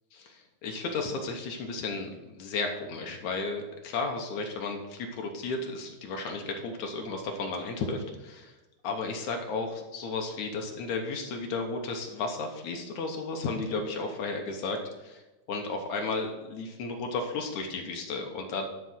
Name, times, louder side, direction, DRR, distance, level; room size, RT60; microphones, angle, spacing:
voice 1, 0.2-8.5 8.8-15.2 15.5-18.7, left 3 dB, 70° left, 2 dB, 1.8 m, -33 dB
11.5 x 4.7 x 6.2 m, 1.1 s
omnidirectional pair, 4.6 m